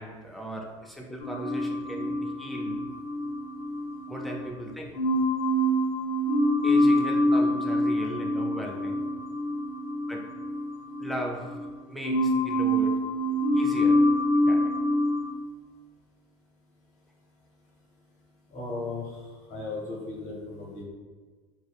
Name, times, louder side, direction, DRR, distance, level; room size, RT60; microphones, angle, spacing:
voice 1, 0.0-2.8 4.1-4.9 6.6-9.0 10.1-10.2 11.0-11.5 11.9-12.9 13.5-14.0 14.5-14.7, right 1 dB, ahead, -1 dB, 0.4 m, -37 dB
sound 1, 1.2-4.5 4.9-11.7 12.0-15.3, equal, 85° left, 0.5 m, -26 dB
voice 2, 18.5-19.2 19.5-20.8, left 3 dB, 45° left, -4 dB, 0.8 m, -36 dB
2.6 x 2.0 x 2.3 m, 1.4 s
hypercardioid pair, 80°, 17 cm